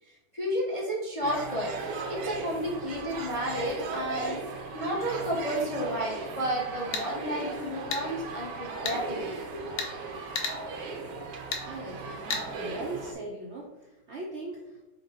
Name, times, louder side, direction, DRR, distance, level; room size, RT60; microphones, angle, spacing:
voice 1, 0.0-4.4 4.7-9.8, equal, 30° left, -3 dB, 0.6 m, -32 dB
sound 1, 1.2-13.1, right 3 dB, 85° right, 1.4 m, -37 dB
sound 2, 6.8-7.1 7.9-8.0 8.8-9.0 9.8-9.9 10.3-10.6 11.5-11.6 12.3-12.4, left 4 dB, 75° left, 1.3 m, -31 dB
voice 2, 11.6-12.2 12.5-14.8, right 2 dB, 60° right, -3 dB, 0.7 m, -39 dB
5.2 x 2.1 x 4.8 m, 1.0 s
omnidirectional pair, 1.8 m